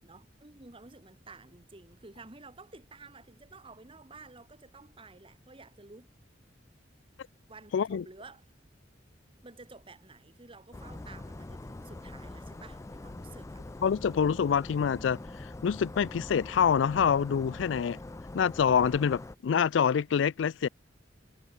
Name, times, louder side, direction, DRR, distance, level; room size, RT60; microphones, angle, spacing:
voice 1, 0.0-6.1 7.5-8.4 9.4-13.6, right 3 dB, 30° right, 1.5 m, -52 dB
voice 2, 7.7-8.0 13.8-18.0 18.3-20.7, left 7 dB, 85° left, 0.4 m, -26 dB
sound 1, 10.7-19.3, left 2 dB, 15° left, 0.4 m, -43 dB
head